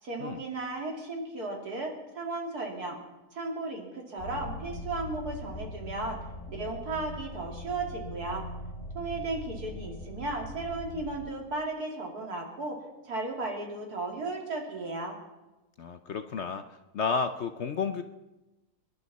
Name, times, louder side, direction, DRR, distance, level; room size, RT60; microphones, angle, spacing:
voice 1, 0.0-3.0 3.3-6.2 6.5-8.4 8.9-12.8 13.0-15.2, right 2 dB, 75° right, 0 dB, 3.2 m, -35 dB
sound 1, 4.2-11.3, left 1 dB, 40° left, 4.7 m, -41 dB
voice 2, 15.8-16.6 16.9-18.0, left 5 dB, 60° left, 8 dB, 0.8 m, -31 dB
26.5 x 11.5 x 4.1 m, 1.1 s
omnidirectional pair, 1.7 m